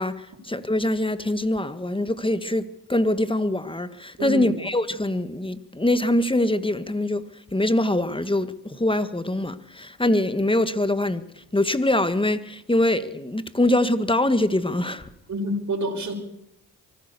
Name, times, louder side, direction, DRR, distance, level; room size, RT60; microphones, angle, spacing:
voice 1, 0.0-7.2 7.5-15.1, left 1 dB, 10° left, 1.8 m, -23 dB
voice 2, 4.2-4.5 15.3-16.1, equal, 45° right, 5.4 m, -27 dB
24.0 x 15.5 x 7.0 m
cardioid pair, 65°, 41 cm